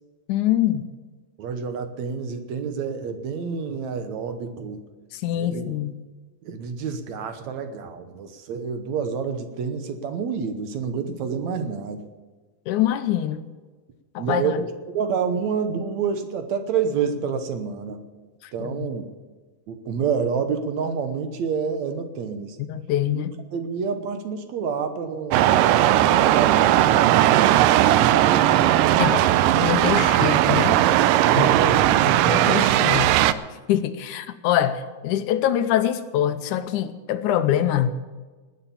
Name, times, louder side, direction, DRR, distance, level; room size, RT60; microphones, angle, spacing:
voice 1, 0.3-0.9 5.1-6.0 12.7-13.5 14.2-14.6 18.4-18.9 22.7-23.4 29.0-30.8 31.4-31.5 32.3-33.1 33.7-37.9, left 11 dB, 75° left, 11 dB, 2.1 m, -24 dB
voice 2, 1.4-4.8 5.4-5.7 6.5-12.0 14.2-14.7 14.9-18.0 18.5-19.1 19.7-22.6 23.1-23.2 23.5-27.0 27.6-28.6 29.9-30.7 31.1-32.4, right 6 dB, 65° right, 8 dB, 2.2 m, -28 dB
sound 1, 25.3-33.3, right 13 dB, 90° right, 2.3 m, -18 dB
19.5 x 8.7 x 7.1 m, 1.3 s
omnidirectional pair, 3.7 m